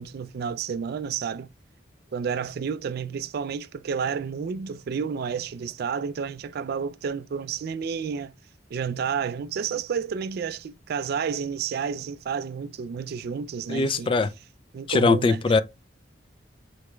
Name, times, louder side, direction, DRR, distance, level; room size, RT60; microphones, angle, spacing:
voice 1, 0.0-1.5 2.1-8.3 8.7-14.1 14.7-15.6, right 6 dB, 55° right, 0.3 m, -30 dB
voice 2, 13.7-14.3 14.9-15.6, left 3 dB, 30° left, 0.4 m, -21 dB
4.8 x 4.1 x 2.3 m
head